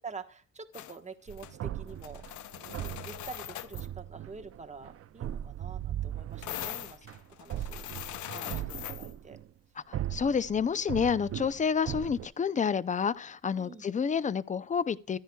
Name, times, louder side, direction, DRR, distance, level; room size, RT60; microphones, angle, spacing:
voice 1, 0.0-2.2 2.7-7.9 8.3-9.4 13.6-13.8, right 4 dB, 25° right, 1.3 m, -47 dB
sound 1, 0.7-1.0 1.3-1.5 1.9-3.9 6.4-9.1, left 13 dB, 75° left, 0.7 m, -41 dB
sound 2, 1.3-9.5 9.9-12.3, right 11 dB, 50° right, 0.5 m, -39 dB
voice 2, 9.9-15.2, left 6 dB, 25° left, 0.5 m, -29 dB
14.0 x 10.0 x 2.3 m
cardioid pair, 90°, 30 cm